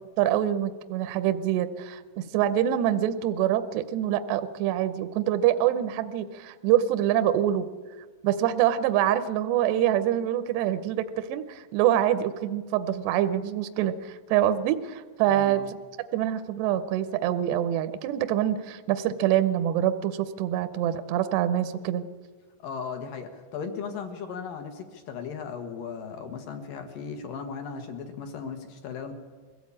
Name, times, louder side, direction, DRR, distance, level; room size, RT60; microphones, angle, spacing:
voice 1, 0.2-7.7 8.2-15.6 16.1-22.0, right 11 dB, 75° right, 10 dB, 2.6 m, -25 dB
voice 2, 15.3-15.7 22.6-29.1, left 6 dB, 60° left, 6 dB, 2.5 m, -37 dB
22.0 x 15.5 x 8.6 m, 1.5 s
omnidirectional pair, 5.5 m